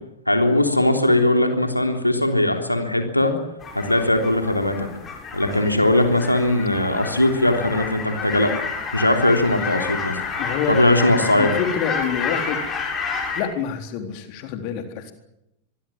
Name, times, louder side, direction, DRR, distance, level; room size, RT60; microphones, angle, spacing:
voice 1, 0.3-3.3 3.7-4.9 5.3-8.5 8.9-10.2 10.7-11.5, left 1 dB, 85° left, 5 dB, 3.4 m, -19 dB
sound 1, 3.6-13.4, left 5 dB, 25° left, 7.8 m, -30 dB
voice 2, 10.4-10.8 11.4-12.6 13.4-15.1, left 7 dB, 45° left, 6 dB, 3.9 m, -27 dB
25.0 x 23.0 x 7.4 m, 0.85 s
figure-of-eight pair, 90°, 0 cm